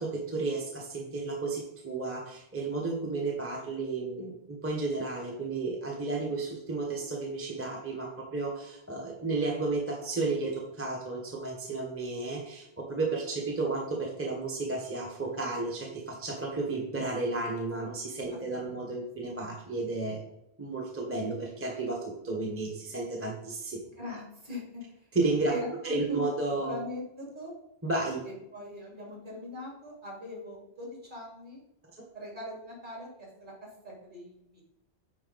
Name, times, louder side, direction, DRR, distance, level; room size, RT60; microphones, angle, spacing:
voice 1, 0.0-20.2 20.6-23.9 25.1-25.5 25.8-26.8 27.8-28.2, right 3 dB, 15° right, -1 dB, 1.0 m, -32 dB
voice 2, 18.5-18.9 24.0-24.8 25.5-26.3 26.6-27.5 28.2-31.6 32.1-33.5 33.8-34.6, left 1 dB, 50° right, -3 dB, 3.1 m, -41 dB
9.9 x 4.4 x 4.0 m, 0.83 s
omnidirectional pair, 1.1 m